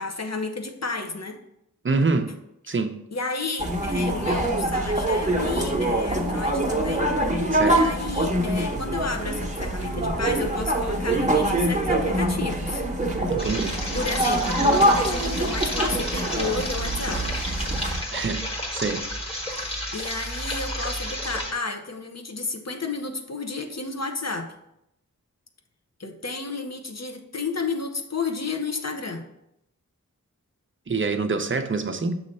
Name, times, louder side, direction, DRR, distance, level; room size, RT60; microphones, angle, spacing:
voice 1, 0.0-1.4 2.7-2.8 3.1-12.8 13.9-17.3 19.6-24.5 26.0-29.3, left 3 dB, 50° left, 0.8 m, -32 dB
voice 2, 1.8-2.3 2.7-2.9 7.5-7.8 13.3-13.8 18.1-18.4 18.7-19.0 30.9-32.2, right 4 dB, 35° right, 0.6 m, -25 dB
sound 1, 3.6-18.0, right 1 dB, 20° right, 1.0 m, -24 dB
sound 2, 13.4-21.5, equal, 15° left, 1.5 m, -31 dB
6.5 x 3.1 x 5.3 m
wide cardioid pair, 50°, 33 cm